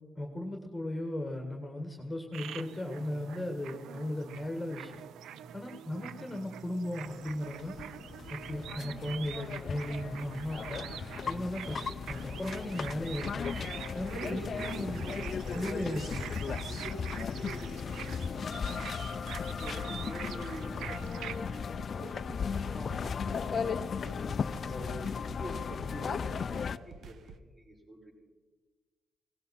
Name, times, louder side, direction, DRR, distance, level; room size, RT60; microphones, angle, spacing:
voice 1, 0.2-5.0 5.5-7.7 8.3-10.8 11.3-13.5 13.9-15.2 15.5-16.2, left 1 dB, 10° left, 2 dB, 1.8 m, -36 dB
sound 1, 2.3-21.5, right 9 dB, 80° right, 0.5 m, -45 dB
sound 2, 7.1-26.8, left 6 dB, 45° left, 0.4 m, -36 dB
voice 2, 14.1-16.3 16.7-19.0 19.5-24.2 24.6-28.1, right 1 dB, 30° right, -1 dB, 5.4 m, -46 dB
sound 3, 19.8-27.4, right 4 dB, 60° right, 1.0 m, -53 dB
17.5 x 17.0 x 4.3 m, 1.3 s
cardioid pair, 90°, 0 cm